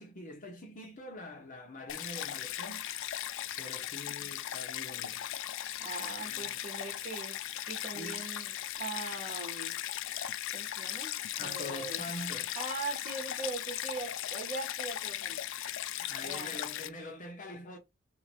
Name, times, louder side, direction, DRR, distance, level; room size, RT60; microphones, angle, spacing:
voice 1, 0.0-2.9 3.6-5.3 6.2-6.6 7.7-8.2 11.4-12.6 16.0-17.8, left 1 dB, 40° left, 1.1 m, -45 dB
Stream, 1.9-16.9, left 12 dB, 65° left, 0.4 m, -38 dB
voice 2, 5.8-9.8 10.5-11.1 11.4-12.1 12.5-15.4 16.2-16.6, right 3 dB, 35° right, 1.7 m, -41 dB
sound 1, 9.9-13.5, left 3 dB, 25° left, 1.7 m, -59 dB
3.1 x 2.9 x 4.4 m
head